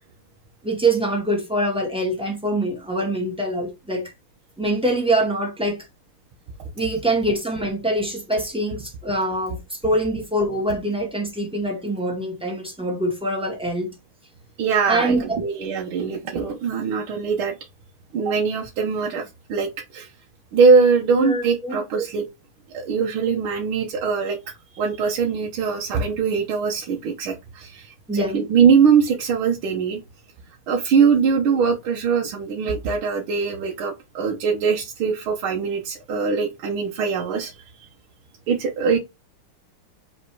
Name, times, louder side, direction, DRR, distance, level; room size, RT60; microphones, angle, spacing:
voice 1, 0.6-4.1 4.6-5.8 6.8-13.9 14.9-15.4 21.1-21.8 28.1-28.4, right 1 dB, 5° right, 1.8 m, -24 dB
voice 2, 14.6-17.5 18.1-19.2 19.5-20.1 20.5-22.3 22.7-24.4 24.7-30.0 30.7-37.5 38.5-39.0, right 5 dB, 75° right, 1.8 m, -21 dB
5.3 x 4.2 x 4.6 m
omnidirectional pair, 2.3 m